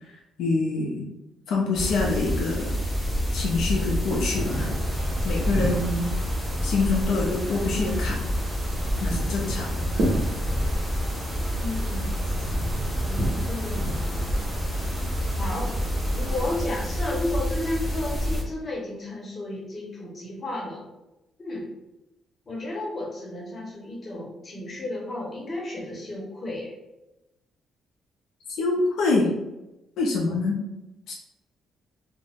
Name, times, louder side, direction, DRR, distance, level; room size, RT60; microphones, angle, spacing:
voice 1, 0.0-1.1 1.5-2.8 3.3-4.7 5.2-6.1 6.6-8.2 9.0-10.0 28.5-29.3 30.0-30.6 31.1-31.2, left 3 dB, 80° left, -2 dB, 0.5 m, -26 dB
sound 1, 1.7-18.4, equal, ahead, 0.6 m, -28 dB
Wind, 4.2-16.5, right 1 dB, 70° right, 0.7 m, -34 dB
voice 2, 11.6-12.4 13.0-14.8 15.4-15.7 16.1-20.8 21.4-21.7 22.5-26.7, left 1 dB, 35° left, -2 dB, 0.9 m, -33 dB
2.4 x 2.1 x 3.3 m, 0.96 s
cardioid pair, 90°, 0 cm